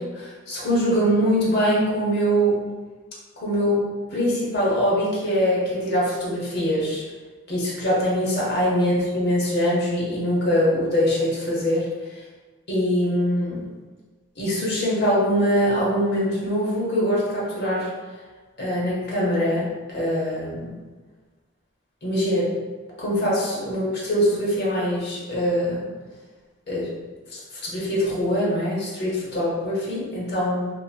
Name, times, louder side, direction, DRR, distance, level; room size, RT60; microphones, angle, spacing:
voice 1, 0.0-2.6 3.4-3.8 4.1-7.0 7.5-11.9 12.7-13.6 14.4-17.9 18.6-20.7 22.0-22.5 23.0-25.8 26.7-26.9 27.3-30.7, equal, 45° left, -6 dB, 0.8 m, -23 dB
2.8 x 2.6 x 2.2 m, 1.3 s
head